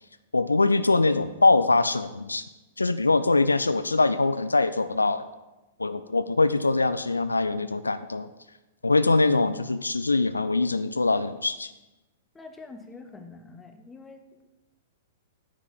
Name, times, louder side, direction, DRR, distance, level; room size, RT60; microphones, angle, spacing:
voice 1, 0.3-2.4 2.8-5.3 5.8-8.3 8.8-11.7, left 3 dB, 80° left, 12 dB, 0.4 m, -23 dB
voice 2, 12.3-14.5, left 3 dB, 10° left, 6 dB, 1.1 m, -45 dB
9.6 x 6.0 x 7.1 m, 1.0 s
figure-of-eight pair, 105°, 0 cm